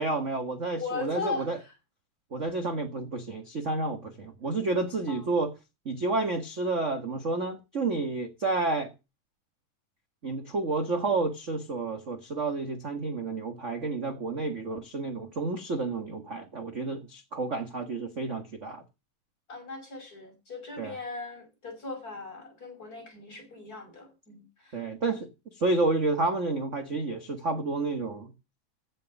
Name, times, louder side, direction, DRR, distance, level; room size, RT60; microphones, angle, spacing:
voice 1, 0.0-1.6 2.3-5.5 5.8-8.9 10.2-18.8 20.8-20.9 24.7-25.3 25.5-28.3, right 3 dB, 35° right, 1.3 m, -30 dB
voice 2, 0.8-1.7 5.1-5.3 19.5-24.9, left 4 dB, 25° left, 6.2 m, -38 dB
15.5 x 6.9 x 7.3 m
omnidirectional pair, 3.6 m